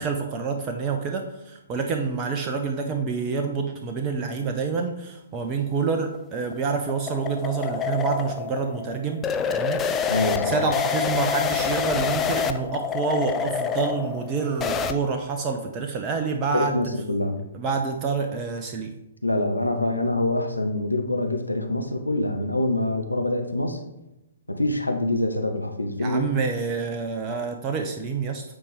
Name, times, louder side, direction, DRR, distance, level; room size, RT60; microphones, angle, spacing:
voice 1, 0.0-16.8 17.5-19.0 26.0-28.4, right 5 dB, 25° right, 3 dB, 0.8 m, -27 dB
sound 1, 6.0-14.9, left 7 dB, 15° left, 0.5 m, -27 dB
voice 2, 10.1-10.5 16.5-17.4 19.2-23.8 24.5-26.3, left 1 dB, 80° left, 5 dB, 1.0 m, -25 dB
8.7 x 4.5 x 5.0 m, 0.91 s
figure-of-eight pair, 120°, 0 cm